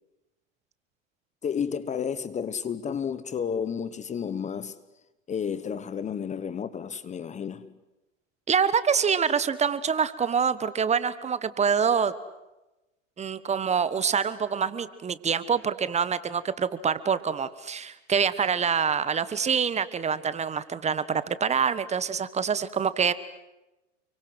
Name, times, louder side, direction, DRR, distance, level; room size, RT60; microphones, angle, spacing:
voice 1, 1.4-4.8 5.3-7.8, left 7 dB, 20° left, 1.2 m, -31 dB
voice 2, 8.5-12.1 13.2-23.1, right 6 dB, 15° right, 1.3 m, -26 dB
30.0 x 24.0 x 7.9 m
hypercardioid pair, 120°, 38 cm